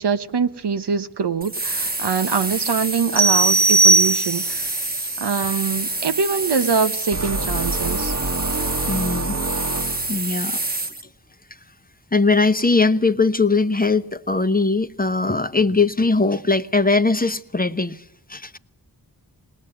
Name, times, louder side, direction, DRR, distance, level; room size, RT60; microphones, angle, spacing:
voice 1, 0.0-4.7 5.2-8.2, right 6 dB, 80° right, 0.9 m, -23 dB
sound 1, 1.4-11.0, right 2 dB, 20° right, 1.1 m, -27 dB
sound 2, 3.2-4.7, right 3 dB, 70° left, 1.2 m, -17 dB
sound 3, 7.1-10.3, right 2 dB, 45° right, 1.2 m, -27 dB
voice 2, 8.9-9.4 10.1-10.6 12.1-18.0 18.3-18.6, left 3 dB, 20° left, 0.8 m, -20 dB
20.0 x 19.5 x 7.8 m
wide cardioid pair, 80°, 40 cm